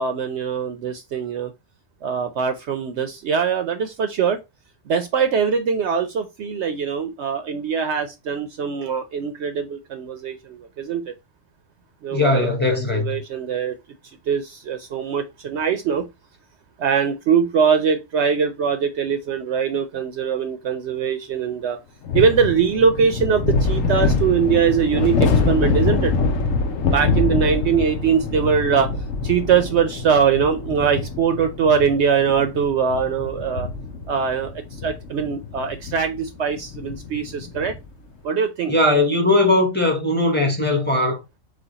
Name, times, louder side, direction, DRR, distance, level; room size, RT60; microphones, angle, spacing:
voice 1, 0.0-1.5 2.0-4.4 4.9-11.1 12.0-13.8 14.3-16.1 16.8-21.8 22.1-26.1 26.9-28.9 29.2-33.7 34.1-37.7 38.2-38.7, right 6 dB, 65° right, 0.8 m, -22 dB
voice 2, 12.1-13.2 38.7-41.2, left 2 dB, 10° left, 1.1 m, -19 dB
sound 1, 22.0-37.9, left 4 dB, 75° left, 1.1 m, -25 dB
5.0 x 2.3 x 4.0 m
omnidirectional pair, 1.3 m